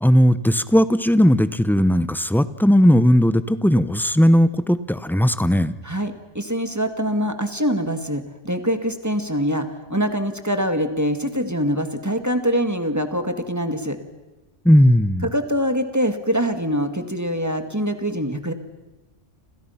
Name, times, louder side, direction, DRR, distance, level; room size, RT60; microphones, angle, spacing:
voice 1, 0.0-5.7 14.6-15.3, equal, ahead, 13 dB, 0.7 m, -17 dB
voice 2, 5.8-14.0 15.2-18.5, equal, 15° right, 7 dB, 2.0 m, -24 dB
30.0 x 27.5 x 5.8 m, 1.1 s
omnidirectional pair, 1.2 m